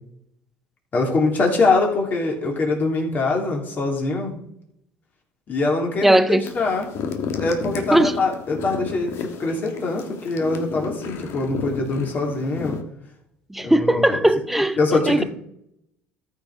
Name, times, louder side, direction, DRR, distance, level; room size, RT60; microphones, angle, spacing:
voice 1, 0.9-4.3 5.5-6.9 7.3-12.8 13.6-14.2 14.8-15.2, left 3 dB, 35° left, 3.3 m, -23 dB
voice 2, 6.0-6.5 7.9-8.1 13.5-14.8 15.1-15.2, right 1 dB, 5° right, 0.7 m, -18 dB
sound 1, 6.4-12.8, left 6 dB, 55° left, 1.6 m, -32 dB
13.5 x 6.0 x 4.9 m
cardioid pair, 120°, 5 cm